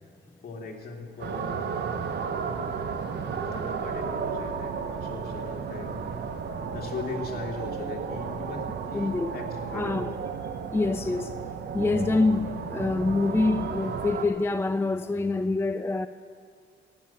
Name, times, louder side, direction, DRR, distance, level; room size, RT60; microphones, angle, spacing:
voice 1, 0.4-1.7 3.3-6.1 6.6-10.2, left 4 dB, 50° left, 2.6 m, -39 dB
sound 1, 1.2-14.2, right 6 dB, 60° right, 1.2 m, -33 dB
voice 2, 8.9-9.3 9.7-10.1 10.7-11.3 11.7-16.1, left 3 dB, 10° left, 0.4 m, -26 dB
16.5 x 8.5 x 8.8 m
cardioid pair, 90°, 20 cm